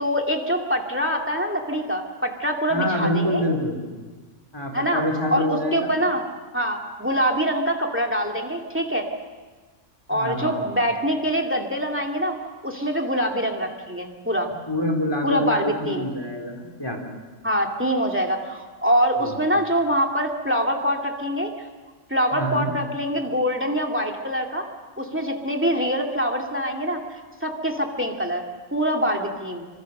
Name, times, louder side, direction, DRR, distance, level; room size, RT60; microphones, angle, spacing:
voice 1, 0.0-3.4 4.7-6.2 6.5-9.1 10.1-14.5 15.2-16.1 17.4-21.5 22.1-24.7 25.0-27.0 27.4-29.7, equal, 10° right, 2 dB, 2.4 m, -24 dB
voice 2, 2.7-3.9 4.5-5.9 10.1-10.7 14.7-17.0 19.2-19.4 22.3-22.7, left 1 dB, 20° left, 3 dB, 3.8 m, -26 dB
26.0 x 26.0 x 6.7 m, 1.4 s
omnidirectional pair, 1.4 m